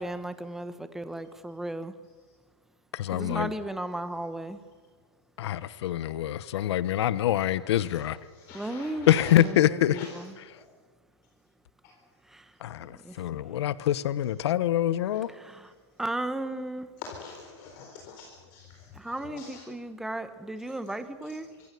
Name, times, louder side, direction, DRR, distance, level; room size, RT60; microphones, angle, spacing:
voice 1, 0.0-1.9 3.1-4.6 8.5-9.1 9.4-10.3 12.3-12.5 12.9-13.6 15.3-15.7 16.0-16.9 18.9-21.5, right 1 dB, 5° right, 1.1 m, -35 dB
voice 2, 2.9-3.5 5.4-8.2 9.1-10.0 12.6-15.3, left 12 dB, 65° left, 1.0 m, -25 dB
voice 3, 8.3-9.4 9.9-10.2 10.5-10.6 11.8-11.9 15.1-15.2 17.0-19.6, left 5 dB, 45° left, 4.1 m, -44 dB
25.0 x 24.5 x 6.9 m
hypercardioid pair, 155°, 15 cm